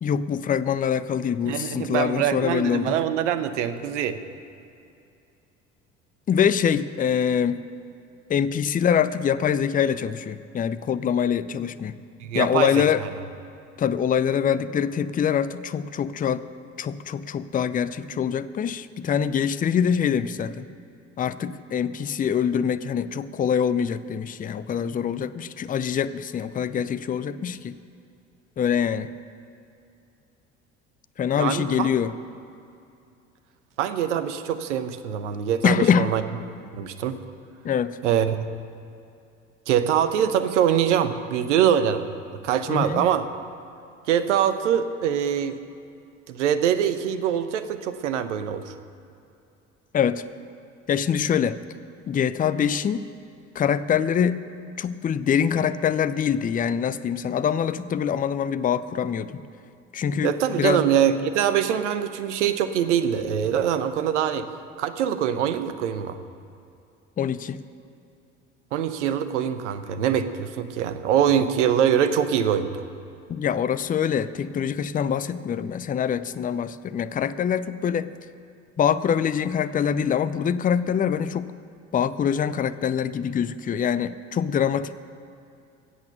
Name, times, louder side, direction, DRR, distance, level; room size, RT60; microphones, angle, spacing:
voice 1, 0.0-3.0 6.3-7.6 8.3-12.0 12.3-13.0 13.8-16.4 16.8-20.6 21.2-27.8 28.6-29.1 31.2-32.1 35.6-36.1 37.6-38.0 42.7-43.0 49.9-50.2 50.9-51.6 52.1-53.1 53.5-54.4 54.8-59.4 59.9-60.8 67.2-67.6 73.3-78.1 78.8-81.5 81.9-85.0, left 8 dB, 25° left, 14 dB, 0.5 m, -24 dB
voice 2, 1.5-4.2 12.2-13.1 31.4-31.9 33.8-36.2 36.7-37.2 38.0-38.4 39.7-42.0 42.4-43.2 44.1-45.6 46.3-48.7 60.2-64.5 64.8-66.2 68.7-72.7, right 9 dB, 75° right, 10 dB, 0.9 m, -23 dB
17.0 x 8.4 x 6.6 m, 2.6 s
figure-of-eight pair, 55°, 37 cm